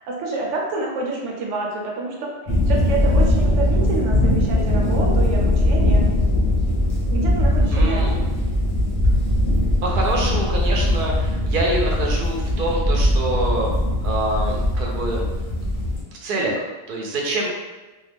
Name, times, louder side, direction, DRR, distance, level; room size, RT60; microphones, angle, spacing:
voice 1, 0.1-6.0 7.1-8.3, right 3 dB, 80° right, -1 dB, 0.9 m, -28 dB
sound 1, 2.5-16.0, left 1 dB, 40° left, 0.6 m, -20 dB
voice 2, 7.7-8.1 9.8-13.7 14.0-15.2 16.2-17.5, right 2 dB, 55° right, -1 dB, 0.6 m, -25 dB
2.3 x 2.1 x 3.3 m, 1.2 s
omnidirectional pair, 1.2 m